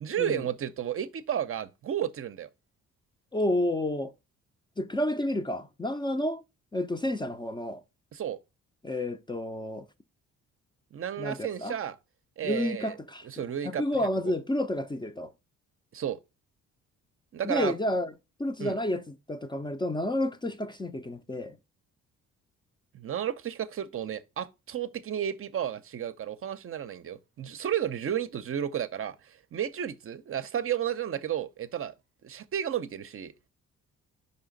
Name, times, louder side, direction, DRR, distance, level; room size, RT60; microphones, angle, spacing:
voice 1, 0.0-2.5 8.1-8.4 10.9-12.0 12.4-13.0 13.2-13.8 15.9-16.2 17.3-17.7 18.6-18.8 22.9-31.9 32.2-33.3, right 9 dB, 45° right, 0.6 m, -32 dB
voice 2, 3.3-4.1 4.8-6.4 6.7-7.8 8.8-9.9 11.2-11.7 12.4-15.3 17.4-18.1 18.4-21.6, left 1 dB, 15° left, 0.5 m, -30 dB
5.4 x 4.9 x 3.8 m
cardioid pair, 90°, 30 cm